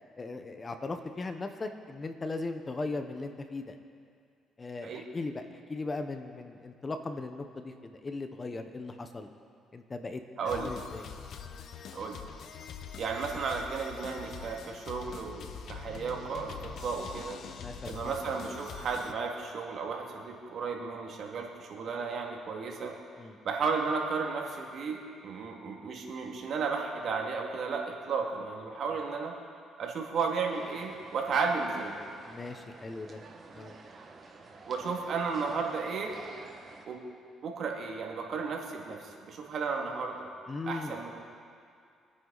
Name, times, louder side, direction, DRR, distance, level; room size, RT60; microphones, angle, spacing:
voice 1, 0.2-3.8 4.6-9.3 9.7-10.2 10.5-11.1 17.6-18.1 23.2-23.4 32.3-33.2 33.5-33.7 40.5-41.0, left 3 dB, 30° left, 7 dB, 1.1 m, -38 dB
sound 1, 10.4-19.1, left 7 dB, 65° left, 1.0 m, -44 dB
voice 2, 10.4-10.7 11.9-12.2 13.0-17.4 17.8-23.0 23.4-29.3 29.8-31.9 34.7-36.1 36.9-37.0 37.4-40.3 40.7-41.2, right 5 dB, 60° right, 0 dB, 2.3 m, -34 dB
sound 2, 30.5-36.9, right 3 dB, 35° right, 1.7 m, -50 dB
25.5 x 9.7 x 4.1 m, 2.3 s
cardioid pair, 95°, 0 cm